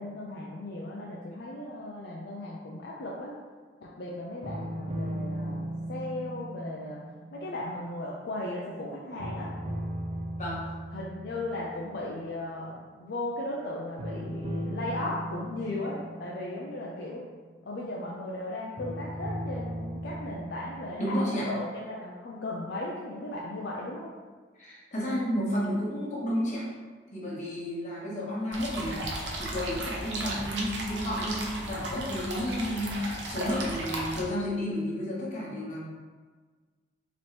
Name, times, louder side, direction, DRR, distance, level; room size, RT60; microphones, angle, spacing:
voice 1, 0.0-3.4 3.8-7.0 7.3-9.5 10.9-17.2 17.6-24.1, left 1 dB, 65° left, -3 dB, 0.5 m, -36 dB
sound 1, 4.4-8.8 9.2-12.5 14.0-18.0 18.8-20.9, right 1 dB, 40° right, 0.5 m, -38 dB
voice 2, 10.4-10.7 21.0-21.5 24.6-26.7 27.1-35.8, equal, 45° left, -5 dB, 1.0 m, -32 dB
sound 2, 28.5-34.2, right 1 dB, 80° right, 0.7 m, -35 dB
4.2 x 3.0 x 3.2 m, 1.5 s
head